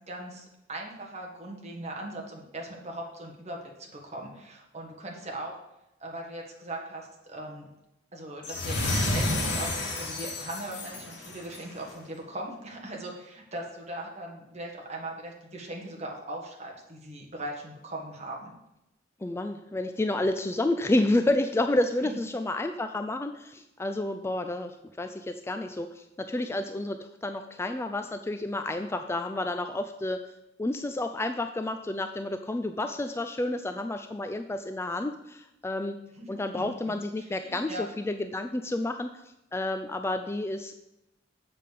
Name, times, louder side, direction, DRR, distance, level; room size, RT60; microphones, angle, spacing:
voice 1, 0.1-5.5 6.0-7.6 8.1-18.5 22.0-22.2 36.2-36.3 36.5-36.9 37.3-37.8, right 1 dB, 35° right, 0 dB, 1.7 m, -39 dB
sound 1, 8.4-11.7, left 2 dB, 65° left, 2.1 m, -30 dB
voice 2, 19.2-30.2 30.6-36.0 36.3-39.2 39.5-40.7, left 2 dB, 15° left, 7 dB, 0.3 m, -30 dB
7.5 x 5.3 x 6.7 m, 0.89 s
head